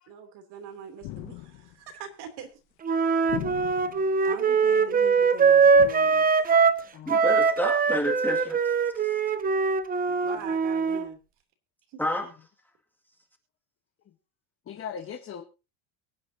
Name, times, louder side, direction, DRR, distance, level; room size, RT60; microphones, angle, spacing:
voice 1, 0.1-2.5 2.9-3.1 4.2-6.3 10.1-11.2 11.9-12.0, right 6 dB, 60° right, 6 dB, 3.1 m, -42 dB
sound 1, 1.0-1.8 3.3-4.1 5.8-5.9, left 16 dB, 75° left, 1.4 m, -38 dB
Wind instrument woodwind instrument, 2.8-6.8 7.1-11.0, right 5 dB, 20° right, 0.7 m, -22 dB
voice 2, 7.1-8.7 9.0-9.1 12.0-12.2, left 1 dB, 5° left, 0 dB, 2.2 m, -30 dB
voice 3, 14.7-15.4, left 7 dB, 30° left, 5 dB, 1.2 m, -39 dB
23.5 x 9.1 x 2.8 m, 0.30 s
cardioid pair, 140°, 45 cm